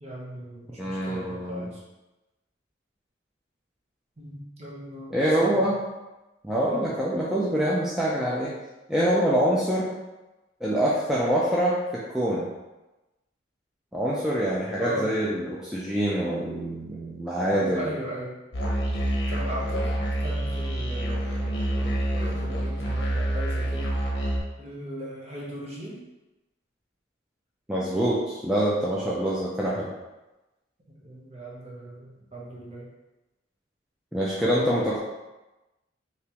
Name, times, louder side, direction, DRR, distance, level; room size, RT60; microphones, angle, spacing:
voice 1, 0.0-1.8 4.2-5.7 6.6-6.9 14.8-15.2 17.5-18.4 19.3-24.0 24.6-26.0 30.9-32.9 34.4-34.9, equal, 35° right, -5 dB, 0.9 m, -37 dB
voice 2, 0.8-1.7 5.1-5.8 6.4-8.5 8.9-9.9 10.6-12.5 13.9-17.9 27.7-29.9 34.1-35.0, right 1 dB, 5° right, -7 dB, 0.4 m, -25 dB
Musical instrument, 18.5-24.4, right 1 dB, 65° left, 0.7 m, -27 dB
3.5 x 2.9 x 2.9 m, 1.0 s
head